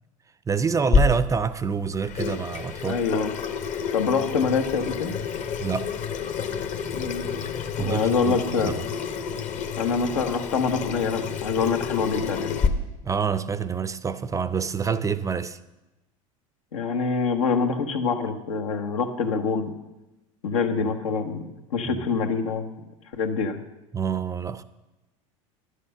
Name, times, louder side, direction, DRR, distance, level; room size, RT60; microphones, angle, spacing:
voice 1, 0.5-3.0 5.6-5.9 7.8-8.4 8.6-8.8 13.0-15.6 21.8-22.1 23.9-24.6, right 6 dB, 20° right, 0.5 m, -27 dB
Water tap faucet / Sink (filling or washing), 0.9-12.7, left 5 dB, 45° left, 1.0 m, -29 dB
voice 2, 2.9-3.3 3.9-5.1 6.9-7.3 7.8-8.7 9.8-12.5 16.7-19.7 20.4-21.5 21.7-22.7 23.2-23.6, left 5 dB, 85° left, 1.2 m, -25 dB
11.0 x 6.5 x 6.6 m
hypercardioid pair, 90°, 17 cm